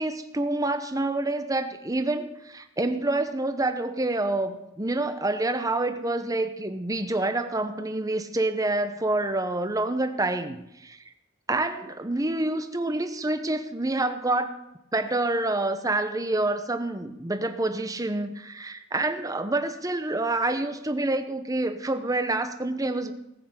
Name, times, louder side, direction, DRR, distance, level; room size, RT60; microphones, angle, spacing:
voice 1, 0.0-11.0 11.5-14.5 14.9-23.1, right 2 dB, 15° right, 9 dB, 0.9 m, -27 dB
18.5 x 6.5 x 8.1 m, 0.90 s
head